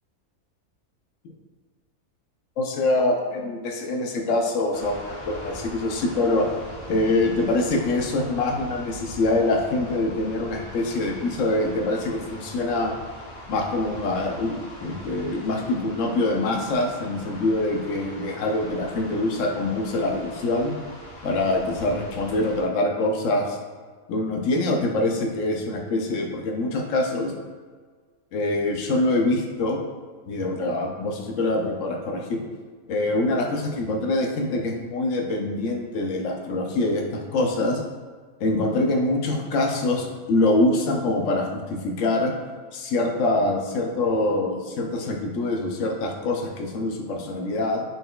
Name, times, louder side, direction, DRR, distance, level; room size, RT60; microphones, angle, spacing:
voice 1, 2.6-6.5 6.9-12.9 13.5-20.7 21.2-23.6 24.1-27.3 28.3-29.8 30.3-32.4 32.9-37.8 38.4-42.3 42.7-47.8, left 2 dB, 70° left, 2 dB, 0.9 m, -24 dB
sound 1, 4.7-22.6, equal, 25° left, 0.7 m, -41 dB
5.3 x 4.0 x 2.2 m, 1.5 s
omnidirectional pair, 1.5 m